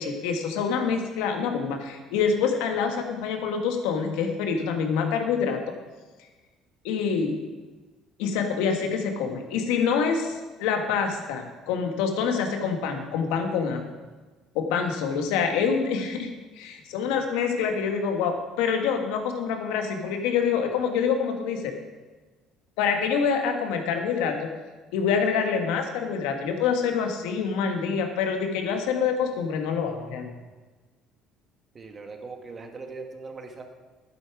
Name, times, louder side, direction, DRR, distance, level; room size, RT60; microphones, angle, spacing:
voice 1, 0.0-5.6 6.8-7.4 8.2-13.8 14.5-16.3 16.5-21.7 22.8-24.5 24.9-30.3, left 6 dB, 90° left, 4 dB, 1.6 m, -26 dB
voice 2, 31.7-33.6, right 4 dB, 30° right, 5 dB, 1.5 m, -40 dB
12.0 x 9.5 x 4.9 m, 1.3 s
cardioid pair, 110°, 0 cm